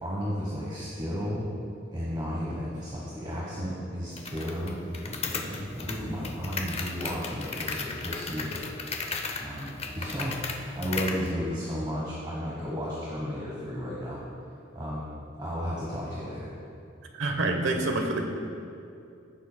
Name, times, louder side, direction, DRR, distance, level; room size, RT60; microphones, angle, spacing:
voice 1, 0.0-1.5 1.9-8.6 9.4-14.3 14.7-15.1 15.4-16.5, equal, 25° right, -5 dB, 1.2 m, -33 dB
sound 1, 4.2-11.3, left 4 dB, 30° left, 0.6 m, -36 dB
voice 2, 17.2-18.2, right 2 dB, 75° right, 4 dB, 1.0 m, -27 dB
15.5 x 7.3 x 2.2 m, 2.5 s
head